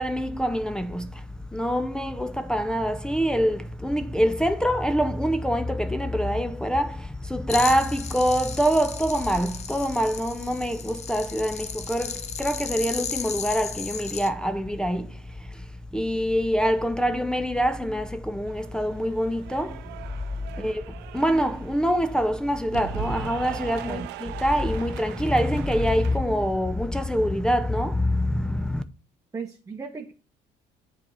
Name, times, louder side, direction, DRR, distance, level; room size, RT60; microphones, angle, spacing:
voice 1, 0.0-19.9 20.6-28.8, equal, 5° left, 0.5 m, -25 dB
sound 1, 7.5-14.3, left 7 dB, 40° left, 0.8 m, -35 dB
Cheering / Applause, 18.5-26.2, right 13 dB, 80° right, 0.5 m, -40 dB
voice 2, 29.3-30.1, right 5 dB, 20° right, 0.9 m, -36 dB
7.2 x 4.1 x 6.6 m
cardioid pair, 110°, 17 cm